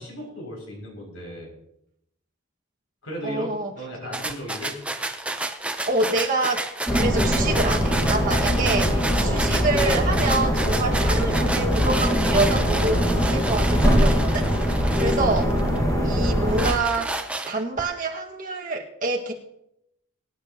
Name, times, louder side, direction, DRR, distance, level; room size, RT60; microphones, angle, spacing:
voice 1, 0.0-1.5 3.0-4.7 9.2-9.5 14.8-15.0, equal, 90° left, -1 dB, 6.6 m, -36 dB
voice 2, 3.2-3.7 5.8-15.5 16.0-17.1 17.5-19.3, right 3 dB, 40° right, -1 dB, 1.8 m, -27 dB
sound 1, 4.1-15.8 16.2-17.8, right 2 dB, 5° right, 0.7 m, -30 dB
sound 2, 6.9-16.7, equal, 15° left, 1.7 m, -22 dB
23.0 x 10.0 x 3.0 m, 0.80 s
head